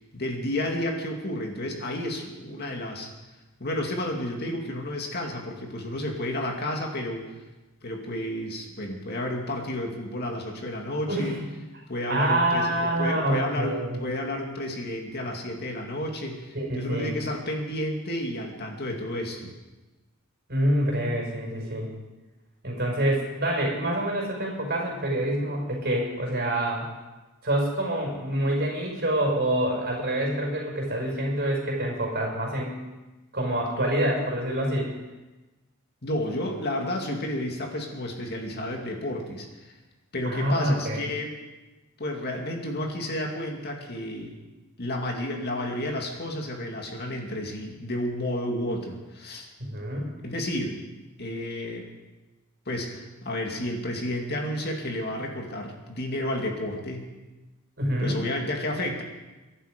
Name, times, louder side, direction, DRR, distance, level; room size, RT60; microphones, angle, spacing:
voice 1, 0.1-3.1 3.6-7.2 7.8-11.4 11.9-19.6 36.0-39.7 40.1-41.4 42.0-44.3 44.8-49.5 50.2-50.8 51.2-51.9 52.7-57.1 58.0-59.0, left 1 dB, 45° left, 1 dB, 2.4 m, -31 dB
voice 2, 11.1-11.5 12.1-14.0 16.5-17.1 20.5-21.9 22.6-26.9 27.4-32.7 33.3-34.9 40.2-41.1 49.6-50.1 57.8-58.2, right 1 dB, 45° right, -1 dB, 5.7 m, -26 dB
24.0 x 11.0 x 5.2 m, 1.1 s
head